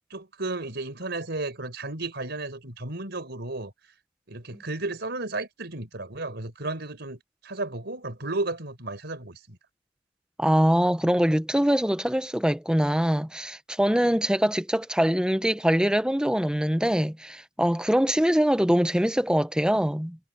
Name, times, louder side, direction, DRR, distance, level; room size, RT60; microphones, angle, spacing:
voice 1, 0.1-3.7 4.3-9.6, right 2 dB, 60° right, 4.9 m, -33 dB
voice 2, 10.4-20.2, equal, 5° right, 0.8 m, -23 dB
head